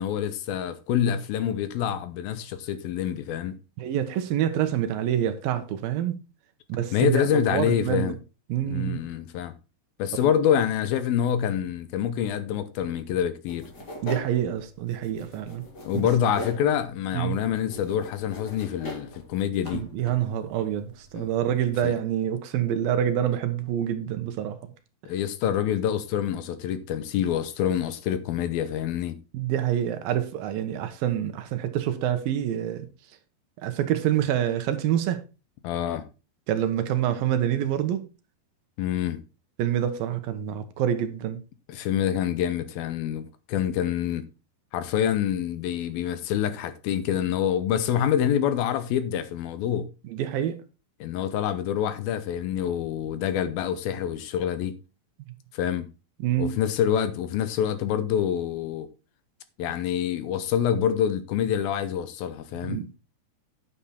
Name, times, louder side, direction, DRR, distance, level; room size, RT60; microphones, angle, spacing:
voice 1, 0.0-3.6 6.9-8.2 8.7-9.5 10.0-13.7 15.8-19.8 21.2-21.3 21.8-21.9 25.1-29.2 35.6-36.1 38.8-39.2 41.7-44.3 44.7-49.9 51.0-54.8 55.5-55.9 56.4-58.9 59.6-62.8, left 9 dB, 80° left, 2.5 m, -26 dB
voice 2, 3.8-6.2 6.7-8.2 8.5-9.0 10.2-10.3 14.0-15.6 17.1-17.4 19.7-24.7 29.3-32.9 33.6-35.2 36.5-38.1 39.6-41.4 50.0-50.6 56.2-56.6 62.6-63.0, right 10 dB, 75° right, 2.6 m, -27 dB
sound 1, 13.5-21.9, left 1 dB, 30° left, 2.6 m, -42 dB
9.5 x 7.1 x 4.2 m
omnidirectional pair, 4.5 m